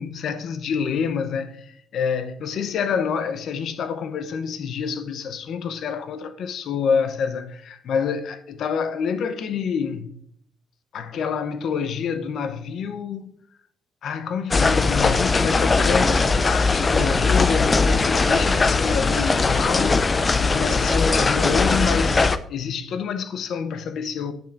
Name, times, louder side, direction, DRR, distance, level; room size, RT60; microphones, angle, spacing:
voice 1, 0.0-10.1 10.9-13.4 14.0-20.1 20.4-24.3, left 6 dB, 70° left, 0.7 m, -27 dB
sound 1, 14.5-22.4, left 3 dB, 30° left, 0.5 m, -20 dB
8.5 x 6.9 x 2.6 m
cardioid pair, 90°, 0 cm